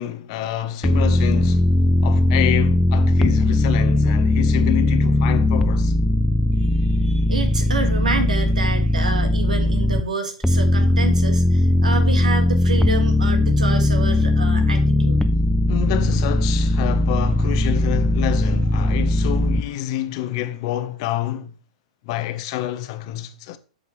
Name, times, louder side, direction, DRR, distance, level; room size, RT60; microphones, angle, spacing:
voice 1, 0.0-1.7 2.0-5.9 15.7-21.5 22.0-23.6, left 14 dB, 50° left, 0.9 m, -27 dB
sound 1, 0.8-10.0 10.4-19.6, left 1 dB, ahead, 0.5 m, -19 dB
voice 2, 6.6-15.2, right 4 dB, 85° right, 1.7 m, -28 dB
8.4 x 5.5 x 3.2 m
hypercardioid pair, 115°, 4 cm